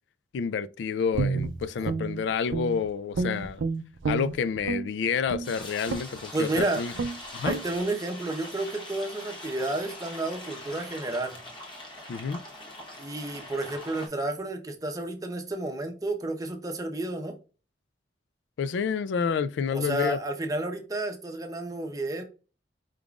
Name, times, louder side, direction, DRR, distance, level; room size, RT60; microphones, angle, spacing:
voice 1, 0.3-3.6 4.1-6.9 7.3-7.5 12.1-12.4 18.6-20.2, left 6 dB, 75° left, 0.3 m, -29 dB
Guitar, 1.1-2.9 3.1-4.9 5.3-5.5 5.9-6.2 6.5-6.7 6.9-7.2 7.4-7.6, right 4 dB, 85° right, 0.4 m, -30 dB
sound 1, 5.4-14.1, left 1 dB, 25° left, 1.0 m, -42 dB
voice 2, 6.3-6.8 7.4-11.4 13.0-17.4 19.7-22.2, right 2 dB, 20° right, 0.8 m, -31 dB
4.8 x 3.6 x 2.4 m
head